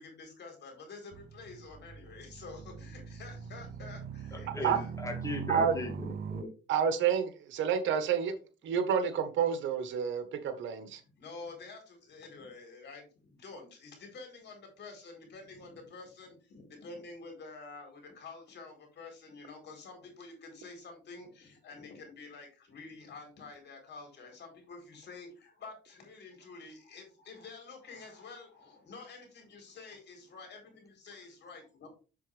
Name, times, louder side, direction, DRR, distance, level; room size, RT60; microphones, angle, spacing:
voice 1, 0.0-4.9 11.0-31.9, left 4 dB, 65° left, 3 dB, 4.1 m, -49 dB
sound 1, 1.1-6.4, right 6 dB, 55° right, 0.9 m, -42 dB
voice 2, 4.3-6.5, left 1 dB, 15° left, 3 dB, 2.5 m, -38 dB
voice 3, 6.7-8.3 8.6-11.0, right 7 dB, 85° right, 9 dB, 1.4 m, -29 dB
7.5 x 7.1 x 3.4 m, 0.32 s
cardioid pair, 105°, 19 cm